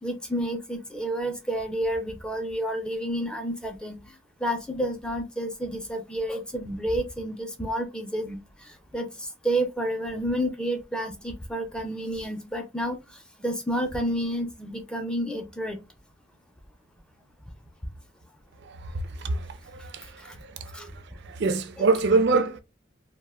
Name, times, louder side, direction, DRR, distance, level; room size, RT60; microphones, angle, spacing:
voice 1, 0.0-4.0 4.4-13.0 13.4-15.8 20.2-20.3 20.7-20.9 21.8-21.9, right 1 dB, 5° left, 0.4 m, -30 dB
voice 2, 19.2-20.9 21.3-22.6, right 4 dB, 60° right, 0.4 m, -25 dB
2.5 x 2.1 x 3.4 m
head